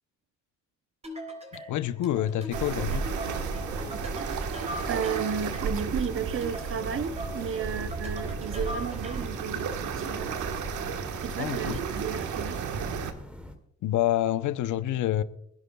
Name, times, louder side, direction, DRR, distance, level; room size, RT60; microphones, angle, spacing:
sound 1, 1.0-9.4, equal, 20° right, 3.7 m, -40 dB
voice 1, 1.5-3.0 11.4-11.8 13.8-15.2, left 12 dB, 75° left, 0.8 m, -27 dB
sound 2, 2.5-13.1, right 6 dB, 75° right, 1.4 m, -33 dB
sound 3, 3.2-13.5, left 1 dB, 5° right, 2.1 m, -43 dB
voice 2, 4.9-10.4 11.2-12.6, right 7 dB, 45° right, 0.8 m, -33 dB
25.5 x 11.0 x 2.3 m
cardioid pair, 90°, 30 cm